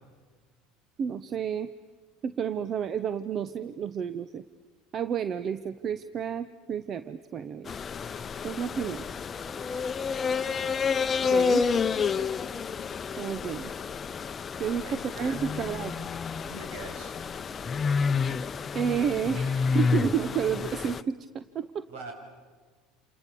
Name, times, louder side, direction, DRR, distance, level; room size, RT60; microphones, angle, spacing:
voice 1, 1.0-1.7 2.2-4.4 4.9-7.7 8.4-9.1 11.3-11.6 13.2-13.7 14.6-16.1 18.7-21.9, right 7 dB, 45° right, 13 dB, 0.9 m, -31 dB
sound 1, 7.7-21.0, left 5 dB, 30° left, 0.8 m, -29 dB
voice 2, 14.6-15.7 16.5-17.1 21.9-22.1, right 1 dB, 70° right, 3 dB, 6.9 m, -43 dB
28.5 x 28.0 x 7.0 m, 1.5 s
hypercardioid pair, 70°, 0 cm